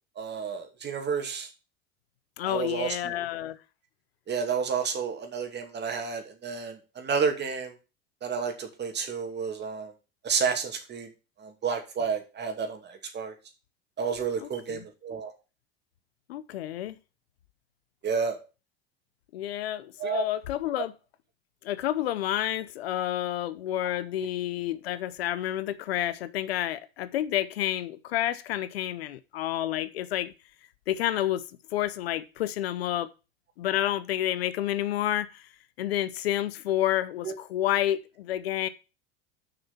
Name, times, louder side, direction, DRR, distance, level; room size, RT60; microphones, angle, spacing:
voice 1, 0.2-1.5 2.5-3.1 4.3-7.7 8.2-9.9 10.2-11.1 11.4-13.3 14.0-15.3 18.0-18.4 20.0-20.3 23.8-24.0 37.2-37.3, right 6 dB, 35° right, 2.5 m, -30 dB
voice 2, 2.4-3.6 14.4-14.8 16.3-17.0 19.3-20.9 21.6-30.3 30.9-31.4 31.7-33.1 33.6-35.5 35.8-38.7, left 13 dB, 85° left, 0.8 m, -29 dB
6.7 x 6.0 x 7.1 m
hypercardioid pair, 90°, 30 cm